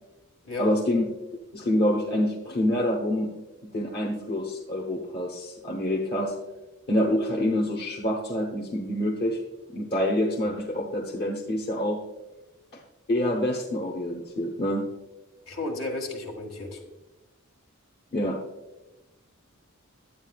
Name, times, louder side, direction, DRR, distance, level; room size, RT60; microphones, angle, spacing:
voice 1, 0.6-1.1 1.5-3.3 3.6-6.4 6.9-9.4 9.7-12.0 12.7-12.8 13.1-14.9 18.1-18.4, left 1 dB, 50° left, -2 dB, 1.0 m, -26 dB
voice 2, 15.5-16.8, left 2 dB, 75° left, 1 dB, 1.8 m, -33 dB
11.0 x 8.8 x 2.4 m, 1.0 s
head